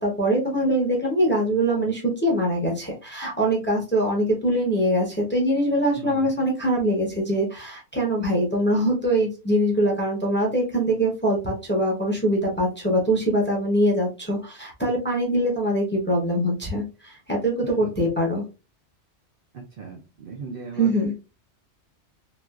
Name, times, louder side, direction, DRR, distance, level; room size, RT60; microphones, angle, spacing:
voice 1, 0.0-18.4 20.8-21.1, right 1 dB, 10° left, -2 dB, 0.7 m, -23 dB
voice 2, 6.0-6.3 17.8-17.9 19.5-20.9, right 5 dB, 60° right, 0 dB, 0.7 m, -38 dB
3.1 x 2.4 x 2.3 m, 0.30 s
omnidirectional pair, 1.2 m